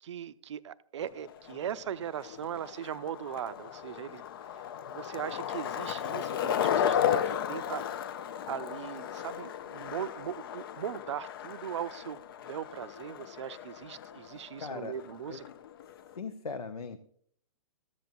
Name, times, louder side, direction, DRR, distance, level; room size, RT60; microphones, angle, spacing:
voice 1, 0.0-4.2 4.9-7.8 8.5-15.4, right 9 dB, 50° right, 0.4 m, -39 dB
Skateboard, 1.0-16.2, left 9 dB, 40° left, 0.4 m, -35 dB
voice 2, 14.6-15.0 15.3-15.4 16.2-17.0, left 4 dB, 80° left, 0.6 m, -38 dB
13.5 x 7.8 x 2.5 m
figure-of-eight pair, 120°, 19 cm